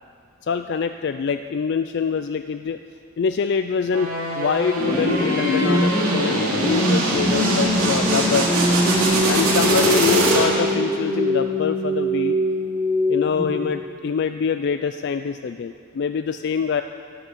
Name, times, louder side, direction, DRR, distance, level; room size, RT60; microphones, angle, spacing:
voice 1, 0.4-2.8 3.2-8.5 9.3-12.4 13.1-16.8, left 6 dB, 50° left, 9 dB, 0.3 m, -24 dB
sound 1, 3.9-10.8, right 2 dB, 90° right, 2.7 m, -23 dB
sound 2, 4.8-13.8, left 1 dB, 5° right, 1.8 m, -23 dB
Wind instrument woodwind instrument, 5.0-10.0, left 2 dB, 40° right, 1.9 m, -39 dB
12.5 x 11.5 x 6.7 m, 2.3 s
head